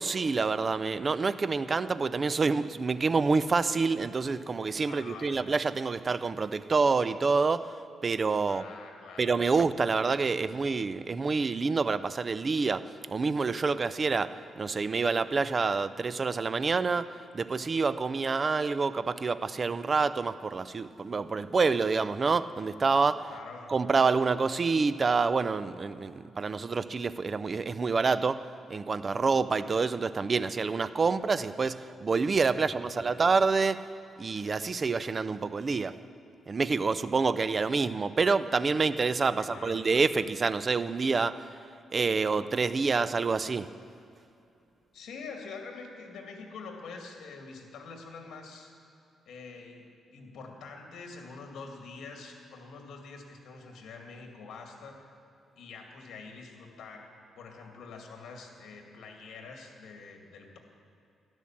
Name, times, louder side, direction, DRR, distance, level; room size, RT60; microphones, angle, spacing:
voice 1, 0.0-7.7 8.0-8.6 9.2-23.3 23.7-28.4 28.7-33.9 34.2-36.0 36.5-41.4 41.9-43.7, right 4 dB, 35° right, 14 dB, 0.5 m, -27 dB
voice 2, 4.9-5.4 8.5-9.6 23.3-23.7 32.5-33.2 39.4-39.8 44.9-48.7 49.3-55.1 55.6-60.6, left 4 dB, 75° left, 2 dB, 2.3 m, -46 dB
12.5 x 11.5 x 7.4 m, 2.6 s
cardioid pair, 120°, 0 cm